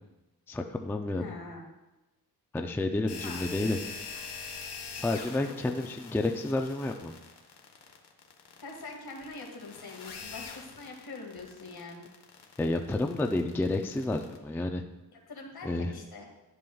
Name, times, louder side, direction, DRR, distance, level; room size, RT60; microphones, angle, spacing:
voice 1, 0.5-1.3 2.5-3.8 4.9-7.1 12.6-14.8 15.6-15.9, left 2 dB, 5° left, 4 dB, 0.4 m, -30 dB
voice 2, 1.2-1.7 3.2-3.4 5.5-5.6 8.6-12.1 15.3-16.3, left 3 dB, 70° left, 0 dB, 2.0 m, -43 dB
sound 1, 3.1-14.4, left 5 dB, 85° left, 1.3 m, -44 dB
11.5 x 11.0 x 2.3 m, 1.0 s
wide cardioid pair, 155°, 39 cm